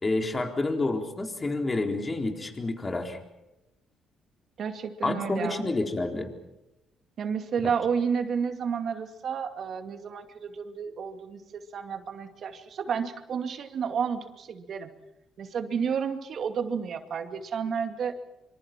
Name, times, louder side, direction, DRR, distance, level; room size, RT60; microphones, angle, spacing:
voice 1, 0.0-3.2 5.0-6.3, left 2 dB, 25° left, 3 dB, 4.0 m, -29 dB
voice 2, 4.6-5.6 7.2-14.9 15.4-18.1, right 6 dB, 60° right, 7 dB, 2.4 m, -31 dB
25.5 x 25.0 x 6.1 m, 0.94 s
cardioid pair, 90°, 0 cm